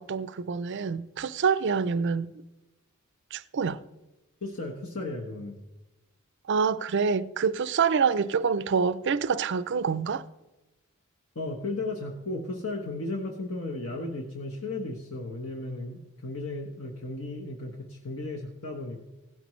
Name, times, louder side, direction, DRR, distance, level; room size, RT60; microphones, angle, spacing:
voice 1, 0.0-2.4 3.3-3.8 6.5-10.2, right 5 dB, 55° right, 0.4 m, -26 dB
voice 2, 4.4-5.6 11.3-19.0, left 2 dB, 65° left, 1.2 m, -35 dB
16.0 x 12.0 x 3.2 m
head